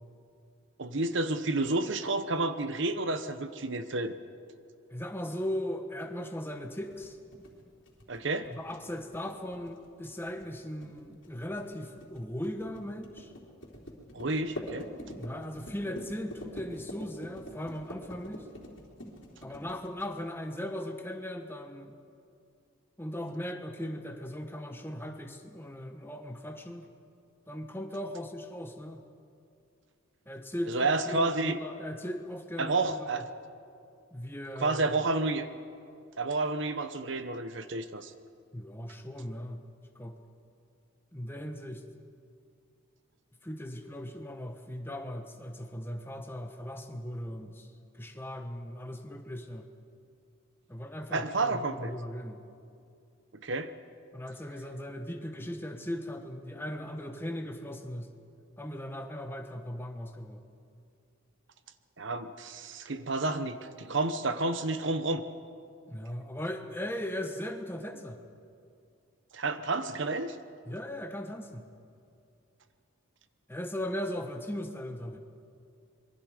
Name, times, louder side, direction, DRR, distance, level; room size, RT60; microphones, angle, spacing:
voice 1, 0.8-4.2 8.1-8.5 14.1-14.9 30.7-31.6 32.6-33.2 34.6-35.5 36.2-38.1 51.1-51.9 53.4-53.7 62.0-65.2 69.3-70.4, right 2 dB, 60° right, 11 dB, 0.9 m, -30 dB
voice 2, 4.9-7.2 8.5-13.3 15.1-18.5 19.4-22.0 23.0-26.9 27.5-29.0 30.3-33.2 34.1-34.9 38.5-39.6 39.9-40.2 41.1-41.8 43.4-47.7 47.9-49.7 50.7-52.4 54.1-58.1 58.6-60.4 65.9-68.2 70.7-71.7 73.5-75.2, equal, 10° left, 5 dB, 1.2 m, -38 dB
sound 1, 6.7-20.5, equal, 60° left, 3.8 m, -45 dB
26.0 x 22.5 x 5.0 m, 2.5 s
head